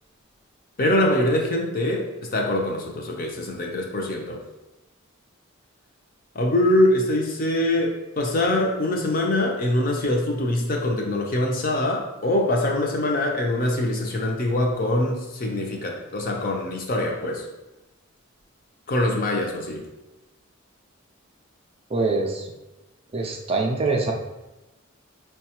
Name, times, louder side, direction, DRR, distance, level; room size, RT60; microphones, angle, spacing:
voice 1, 0.8-4.4 6.3-17.4 18.9-19.8, left 1 dB, 45° left, 0 dB, 0.6 m, -23 dB
voice 2, 21.9-22.5 23.1-24.1, right 3 dB, 30° right, 1 dB, 0.3 m, -24 dB
4.7 x 2.3 x 2.8 m, 1.0 s
head